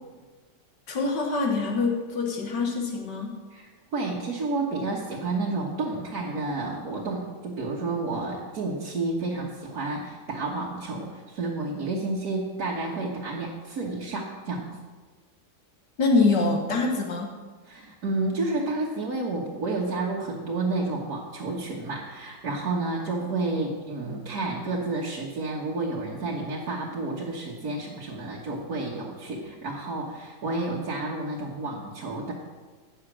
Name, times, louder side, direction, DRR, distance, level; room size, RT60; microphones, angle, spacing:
voice 1, 0.9-3.4 16.0-17.3, left 3 dB, 75° left, 2 dB, 2.0 m, -24 dB
voice 2, 3.5-14.8 17.7-32.3, right 2 dB, 60° right, -4 dB, 1.8 m, -30 dB
16.0 x 6.6 x 6.2 m, 1.4 s
omnidirectional pair, 1.9 m